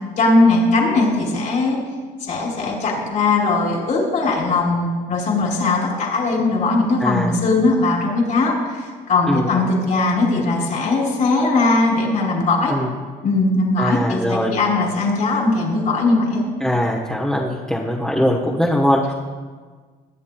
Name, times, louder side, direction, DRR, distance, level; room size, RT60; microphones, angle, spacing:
voice 1, 0.2-1.8 2.2-12.7 13.2-16.4, left 3 dB, 55° left, -1 dB, 2.7 m, -19 dB
voice 2, 7.0-7.3 9.3-9.5 12.7-12.9 13.8-14.5 16.6-19.1, left 1 dB, ahead, -3 dB, 1.1 m, -21 dB
22.0 x 8.2 x 2.3 m, 1.5 s
cardioid pair, 110°, 17 cm